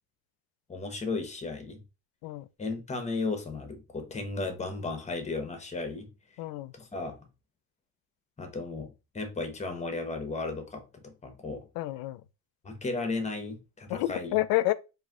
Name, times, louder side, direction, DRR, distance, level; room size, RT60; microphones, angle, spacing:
voice 1, 0.7-1.8 2.6-6.1 6.7-7.2 8.4-11.6 12.6-14.4, left 3 dB, 20° left, 1.0 m, -35 dB
voice 2, 6.4-6.7 11.8-12.2 13.9-14.7, left 16 dB, 65° left, 0.5 m, -29 dB
4.0 x 2.7 x 3.6 m
cardioid pair, 120°, 38 cm